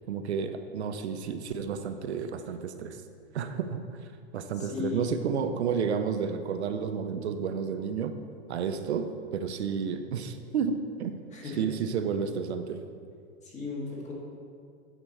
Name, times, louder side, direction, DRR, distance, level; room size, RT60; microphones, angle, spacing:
voice 1, 0.1-3.0 3.3-3.8 4.3-8.2 8.5-11.2 11.6-12.8, right 6 dB, 75° right, 8 dB, 0.6 m, -31 dB
voice 2, 4.6-5.1 11.3-11.7 13.4-14.1, left 5 dB, 20° left, -3 dB, 1.9 m, -36 dB
9.1 x 4.5 x 4.4 m, 2.3 s
hypercardioid pair, 110°, 33 cm